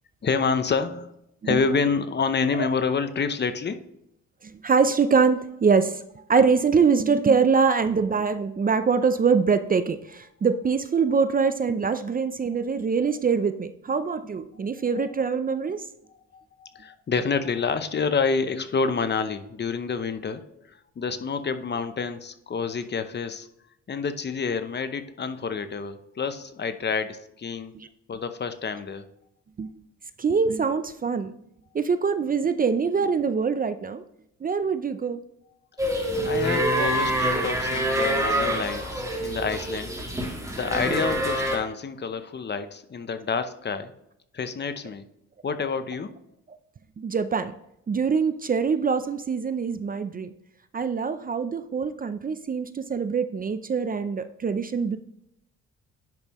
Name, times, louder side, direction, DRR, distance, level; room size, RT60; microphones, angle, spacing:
voice 1, 0.2-1.1 1.4-3.8 16.3-23.5 23.9-27.7 28.1-29.0 36.3-39.9 40.5-43.9 44.3-45.0 45.4-46.1, left 5 dB, 35° left, 10 dB, 0.7 m, -28 dB
voice 2, 4.4-6.0 6.3-15.9 27.7-27.9 29.6-29.7 30.2-31.3 31.7-34.0 34.4-35.2 47.0-47.5 47.9-50.3 50.7-55.0, right 5 dB, 30° right, 11 dB, 0.5 m, -24 dB
sound 1, 35.8-41.6, right 1 dB, 10° right, 2.4 m, -26 dB
10.5 x 5.4 x 3.0 m, 0.79 s
cardioid pair, 90°, 30 cm